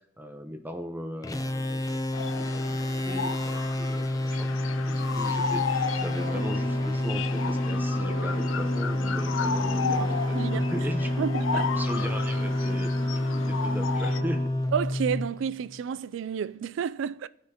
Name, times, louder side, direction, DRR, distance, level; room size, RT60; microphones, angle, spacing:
voice 1, 0.2-2.0 2.4-11.1 11.5-14.6, equal, 10° right, 0.8 m, -38 dB
sound 1, 1.2-15.8, left 1 dB, 20° left, 0.5 m, -29 dB
sound 2, 2.1-14.2, left 5 dB, 80° left, 0.5 m, -34 dB
sound 3, 6.2-14.5, right 1 dB, 45° left, 2.6 m, -36 dB
voice 2, 9.8-10.8 11.2-11.7 14.7-17.3, right 7 dB, 70° right, 0.3 m, -31 dB
18.5 x 6.4 x 2.9 m
head